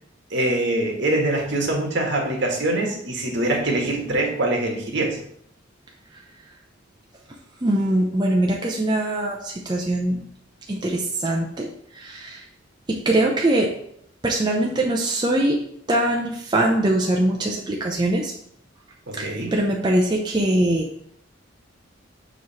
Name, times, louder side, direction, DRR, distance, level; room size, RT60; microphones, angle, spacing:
voice 1, 0.3-5.2 19.1-19.5, right 1 dB, 60° right, 0 dB, 1.7 m, -23 dB
voice 2, 7.6-10.2 10.7-12.4 12.9-13.7 14.2-15.6 15.9-18.3 19.2-20.9, right 1 dB, 25° right, -1 dB, 0.7 m, -22 dB
7.0 x 3.2 x 5.6 m, 0.70 s
head